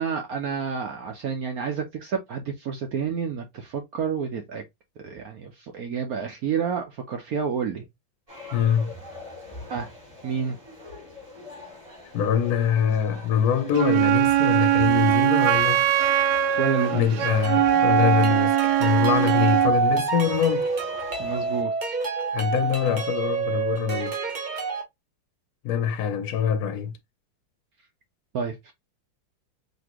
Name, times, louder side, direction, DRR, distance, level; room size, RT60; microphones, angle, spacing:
voice 1, 0.0-4.6 5.0-7.9 9.7-9.9 10.2-10.6 16.6-17.4 21.2-21.9 28.3-28.7, right 6 dB, 65° right, 1.1 m, -29 dB
sound 1, 8.3-21.6, left 2 dB, 15° right, 2.5 m, -43 dB
voice 2, 8.5-8.9 12.1-15.8 16.9-20.7 22.3-24.2 25.6-26.9, left 8 dB, 65° left, 1.0 m, -24 dB
Wind instrument woodwind instrument, 13.7-19.8, right 12 dB, 80° right, 1.2 m, -21 dB
sound 2, 17.4-24.8, right 5 dB, 35° right, 0.7 m, -26 dB
4.2 x 2.8 x 2.9 m
omnidirectional pair, 2.0 m